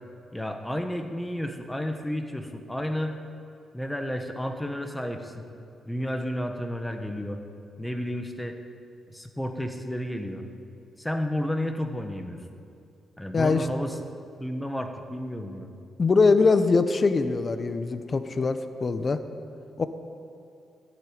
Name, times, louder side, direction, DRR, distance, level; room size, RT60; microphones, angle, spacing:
voice 1, 0.3-3.2 3.7-5.5 5.9-7.4 7.8-8.6 9.1-10.4 11.0-12.4 13.2-14.0 14.4-15.7, equal, 5° left, 5 dB, 1.2 m, -31 dB
voice 2, 13.3-13.7 16.0-19.2 19.8-19.9, left 4 dB, 35° left, 10 dB, 0.8 m, -22 dB
12.5 x 8.5 x 9.5 m, 2.5 s
cardioid pair, 100°, 0 cm